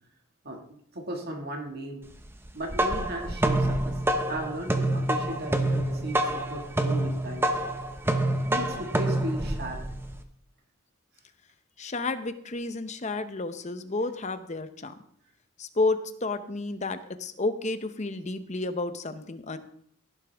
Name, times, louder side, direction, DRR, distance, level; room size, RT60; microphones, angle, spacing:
voice 1, 0.4-2.1 2.5-7.5 8.0-8.2 8.5-9.8, right 1 dB, 50° right, 2 dB, 1.9 m, -36 dB
sound 1, 2.4-10.2, right 1 dB, 10° right, 0.8 m, -27 dB
voice 2, 11.8-14.9 15.6-19.6, left 3 dB, 35° left, 10 dB, 0.8 m, -31 dB
16.5 x 11.0 x 3.5 m, 0.67 s
head